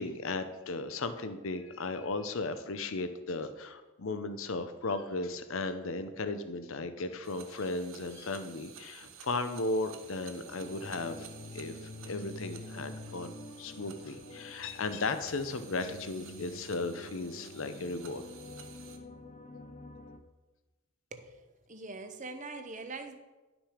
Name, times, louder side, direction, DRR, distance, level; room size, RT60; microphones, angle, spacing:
voice 1, 0.0-11.3 11.5-18.2, left 3 dB, 70° left, 10 dB, 0.7 m, -36 dB
sound 1, 4.0-6.5 6.7-7.1 7.4-7.8 8.1-8.3 8.6-8.7, left 4 dB, 45° left, 1.7 m, -60 dB
sound 2, 7.2-19.0, right 7 dB, 70° right, 1.1 m, -53 dB
sound 3, 10.4-20.2, left 2 dB, 30° left, 0.6 m, -48 dB
voice 2, 21.1-23.2, right 3 dB, 35° right, 8 dB, 0.8 m, -43 dB
11.5 x 6.2 x 5.0 m, 1.2 s
head